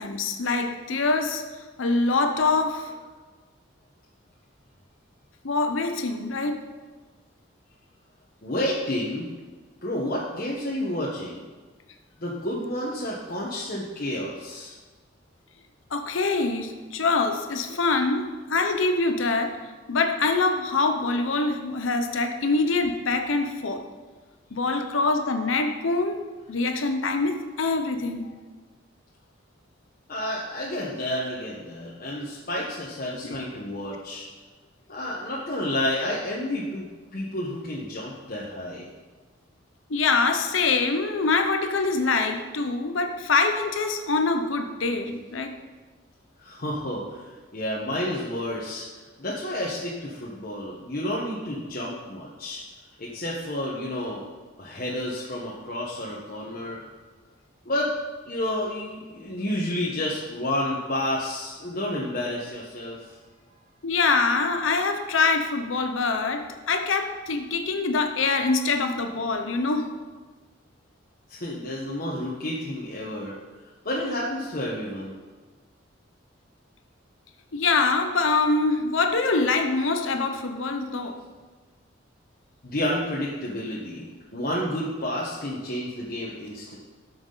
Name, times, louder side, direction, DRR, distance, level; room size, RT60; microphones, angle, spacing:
voice 1, 0.0-1.4 1.8-2.9 5.4-6.7 15.9-19.6 19.9-23.9 24.5-26.2 26.5-28.3 33.2-33.4 39.9-45.6 63.8-69.9 77.5-81.2, left 3 dB, 80° left, 5 dB, 0.8 m, -24 dB
voice 2, 8.4-9.3 9.8-11.4 12.2-14.7 30.1-34.3 34.9-36.9 37.1-38.9 46.4-52.6 53.0-54.2 54.6-56.8 57.6-57.9 58.3-63.1 71.3-73.3 73.8-75.1 82.6-84.1 84.3-86.8, left 1 dB, 50° left, -5 dB, 1.2 m, -30 dB
13.0 x 6.0 x 4.0 m, 1.4 s
head